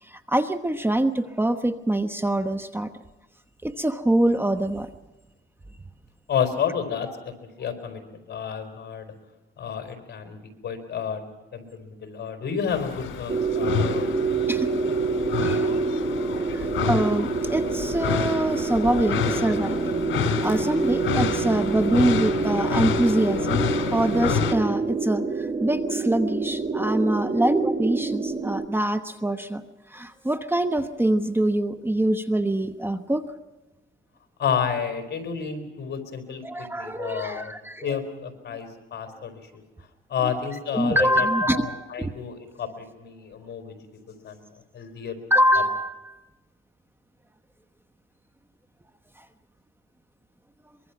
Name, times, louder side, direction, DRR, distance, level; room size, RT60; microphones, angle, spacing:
voice 1, 0.0-2.9 3.6-4.9 14.5-14.7 15.4-15.7 16.5-29.6 29.9-33.2 36.4-37.9 40.7-42.1 45.3-46.2 49.2-49.3, right 1 dB, 10° right, 10 dB, 1.1 m, -25 dB
voice 2, 6.3-9.1 9.6-11.2 11.5-14.4 34.4-37.5 37.8-39.6 40.1-41.3 41.5-43.8 44.1-44.5 44.7-45.2 45.5-45.6, left 7 dB, 55° left, 7 dB, 4.4 m, -31 dB
sound 1, 12.7-24.5, left 7 dB, 75° left, 2.9 m, -29 dB
sound 2, 13.3-28.7, right 4 dB, 35° right, 1.9 m, -27 dB
23.5 x 23.0 x 5.9 m, 1.1 s
cardioid pair, 90°, 20 cm